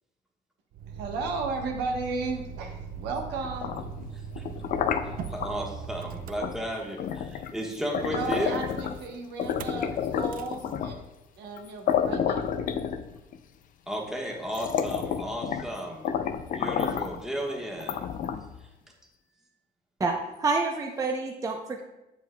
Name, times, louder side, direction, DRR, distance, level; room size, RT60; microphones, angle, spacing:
Motor vehicle (road), 0.7-7.1 9.4-9.8 10.2-10.5, right 6 dB, 60° right, 0.4 m, -40 dB
voice 1, 1.0-3.7 8.0-11.0 11.4-12.4, right 3 dB, 85° right, 1 dB, 1.1 m, -34 dB
sound 1, 3.4-5.5 6.4-6.6 7.0-9.1 9.4-11.0 11.6-11.7 11.9-13.4 14.0-14.1 14.5-15.7 16.0-17.2 17.8-18.6, left 8 dB, 55° left, 0.5 m, -30 dB
voice 2, 4.1-4.4 5.3-8.6 13.9-16.2 16.5-18.1 18.6-18.7, equal, 5° right, -1 dB, 1.3 m, -34 dB
voice 3, 20.4-21.8, right 3 dB, 20° right, 1 dB, 0.6 m, -27 dB
8.0 x 7.1 x 2.2 m, 0.97 s
cardioid pair, 110°, 17 cm